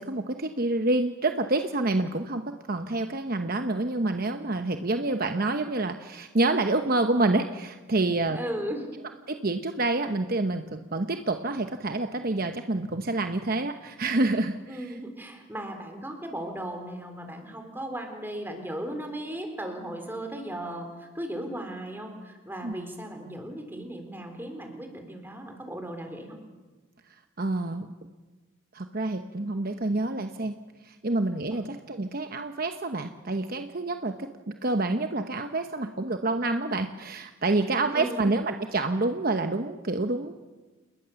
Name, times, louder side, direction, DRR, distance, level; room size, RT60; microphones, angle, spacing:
voice 1, 0.0-8.4 9.3-14.9 22.6-22.7 27.1-27.9 28.7-30.5 30.8-40.3, right 2 dB, 45° right, 7 dB, 1.0 m, -28 dB
voice 2, 8.3-8.9 14.7-26.4 31.5-31.6 37.9-38.3, right 1 dB, 10° right, 4 dB, 3.8 m, -36 dB
29.0 x 20.5 x 7.1 m, 1.3 s
head